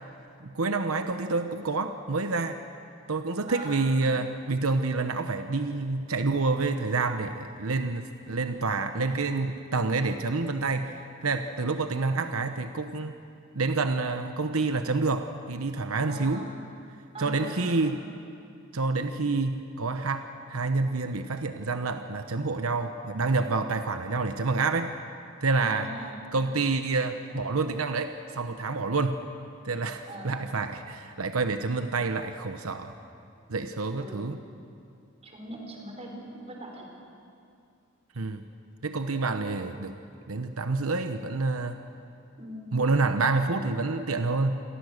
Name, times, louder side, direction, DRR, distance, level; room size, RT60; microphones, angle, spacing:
voice 1, 0.4-2.6 3.1-13.2 13.5-16.5 17.2-18.0 18.7-25.0 25.4-25.9 26.3-29.2 29.6-32.9 33.5-34.4 38.2-38.4 38.8-39.9 40.3-41.8 42.7-44.6, right 3 dB, 90° right, 7 dB, 1.0 m, -28 dB
voice 2, 3.5-3.8 16.1-16.5 17.1-18.0 25.6-26.1 30.1-30.4 34.0-34.3 35.2-36.9 42.4-42.7, right 1 dB, 30° right, 0 dB, 5.1 m, -41 dB
28.0 x 23.0 x 6.6 m, 2.5 s
head